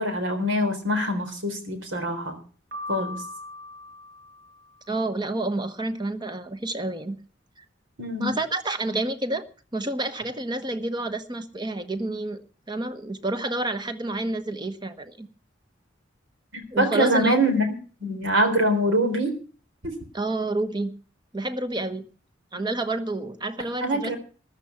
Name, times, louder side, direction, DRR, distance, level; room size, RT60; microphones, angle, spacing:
voice 1, 0.0-2.4 2.9-3.2 8.0-8.3 16.5-17.7 18.0-19.3 19.8-20.0 23.8-24.2, equal, 75° right, 6 dB, 3.9 m, -24 dB
Piano, 2.7-4.9, left 2 dB, 55° right, 5.5 m, -39 dB
voice 2, 4.9-7.2 8.2-9.4 9.7-12.4 12.7-15.3 16.7-17.4 20.1-20.9 21.3-22.0 22.5-24.1, right 2 dB, 20° right, 9 dB, 1.1 m, -29 dB
14.0 x 11.5 x 5.9 m, 0.40 s
head